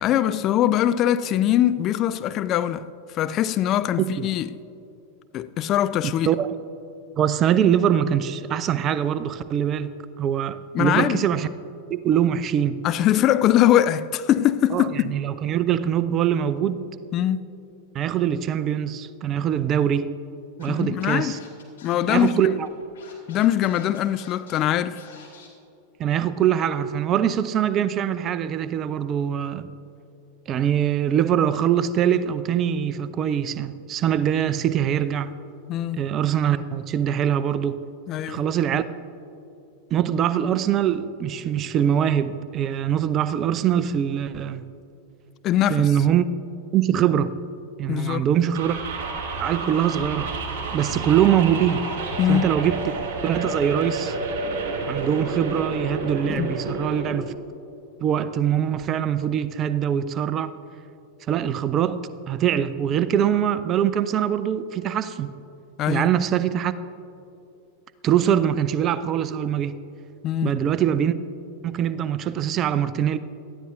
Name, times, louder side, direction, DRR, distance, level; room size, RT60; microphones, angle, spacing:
voice 1, 0.0-4.5 5.3-6.3 10.7-11.3 12.8-15.2 17.1-17.5 20.7-21.4 21.8-22.5 23.3-25.0 35.7-36.0 38.1-38.4 45.4-45.9 47.9-48.3 52.2-52.5 56.3-56.5 65.8-66.1 70.2-70.6, left 11 dB, 35° left, 0.4 m, -22 dB
voice 2, 4.0-4.3 6.3-6.5 7.2-9.9 10.2-11.5 11.9-12.8 14.7-16.9 17.9-20.1 20.6-21.4 22.1-22.7 26.0-29.7 30.5-35.3 36.0-37.8 38.3-38.8 39.9-44.7 45.7-46.2 46.7-47.3 47.8-48.7 49.4-50.3 50.7-51.9 52.3-52.9 53.2-54.1 54.9-57.3 58.0-60.5 61.3-65.3 65.9-66.7 68.0-69.8 70.4-71.1 71.6-73.2, right 9 dB, 30° right, 0.5 m, -23 dB
Scratching (performance technique), 20.6-25.5, left 6 dB, 60° left, 2.7 m, -48 dB
sound 1, 48.5-57.1, right 3 dB, 45° right, 2.8 m, -30 dB
18.5 x 13.0 x 2.6 m
figure-of-eight pair, 90°, 0 cm